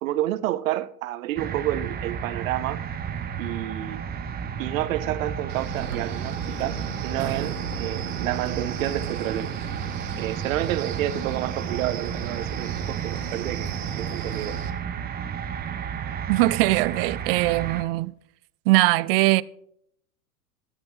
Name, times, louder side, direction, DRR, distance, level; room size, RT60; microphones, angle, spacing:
voice 1, 0.0-2.8 3.4-4.0 4.6-6.8 7.0-9.5 10.2-14.6, right 14 dB, 60° right, 0.8 m, -29 dB
sound 1, 1.4-17.8, right 7 dB, 20° right, 0.8 m, -32 dB
Wind, 5.5-14.7, right 8 dB, 80° right, 1.3 m, -35 dB
voice 2, 16.3-18.1 18.7-19.4, right 20 dB, 40° right, 0.4 m, -21 dB
12.5 x 12.5 x 3.1 m
hypercardioid pair, 100°, 45 cm